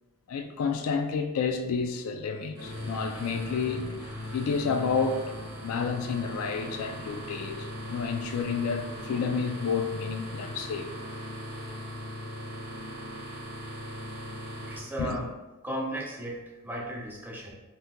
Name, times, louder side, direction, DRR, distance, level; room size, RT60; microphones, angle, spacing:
voice 1, 0.3-3.9 4.3-5.3 5.6-10.9 15.0-15.2, left 5 dB, 70° left, 0.3 m, -30 dB
sound 1, 2.6-14.8, left 1 dB, 45° left, 0.9 m, -39 dB
voice 2, 14.7-15.3 15.6-17.5, right 1 dB, 10° right, 0.3 m, -35 dB
2.8 x 2.2 x 3.6 m
head